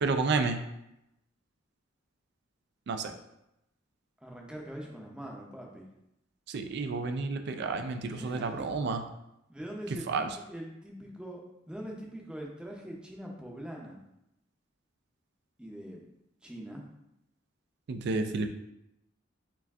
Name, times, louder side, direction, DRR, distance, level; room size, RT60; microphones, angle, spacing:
voice 1, 0.0-0.6 2.9-3.1 6.5-9.0 10.1-10.3 17.9-18.5, right 4 dB, 55° right, 7 dB, 0.4 m, -30 dB
voice 2, 4.2-5.9 8.1-9.0 9.5-14.0 15.6-16.0 16.4-16.9, equal, 5° right, -1 dB, 0.6 m, -43 dB
4.6 x 2.5 x 3.5 m, 0.85 s
head